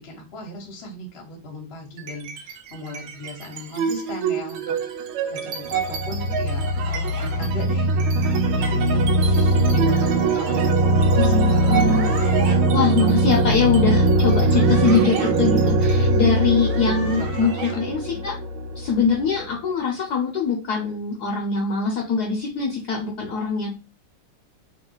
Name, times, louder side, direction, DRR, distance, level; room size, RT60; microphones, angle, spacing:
voice 1, 0.0-4.7 5.3-11.8 16.8-17.6 18.1-18.2, left 1 dB, 40° left, 2 dB, 1.0 m, -38 dB
sound 1, 2.0-2.5 2.9-19.5, right 2 dB, 80° right, 1.4 m, -21 dB
sound 2, 6.7-7.3 8.2-8.7 9.9-10.7 11.7-12.6 14.3-15.3 16.5-17.8, right 4 dB, 65° right, 1.2 m, -38 dB
voice 2, 11.1-12.1 12.7-18.4 18.8-23.7, left 5 dB, 65° left, 0 dB, 1.1 m, -23 dB
3.1 x 3.0 x 3.8 m, 0.32 s
omnidirectional pair, 2.3 m